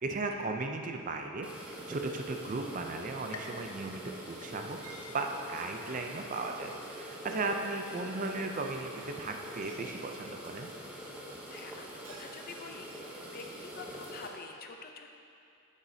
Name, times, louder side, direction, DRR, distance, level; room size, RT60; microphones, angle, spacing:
voice 1, 0.0-1.5 1.9-4.8 5.1-8.9 9.2-10.7, right 3 dB, 35° right, 4 dB, 0.5 m, -36 dB
sound 1, 1.4-14.3, equal, 5° right, 0.8 m, -45 dB
sound 2, 3.3-5.0 5.5-6.1 6.6-6.7 7.6-7.7, left 4 dB, 85° left, 0.6 m, -50 dB
Chink clink, 3.4-5.4 5.9-6.1 6.4-6.8 8.0-10.0 11.3-13.7 14.1-14.2, right 2 dB, 80° right, 1.0 m, -55 dB
voice 2, 11.5-12.9 13.3-15.1, left 4 dB, 45° left, 4 dB, 0.5 m, -47 dB
10.0 x 7.3 x 2.7 m, 2.6 s
head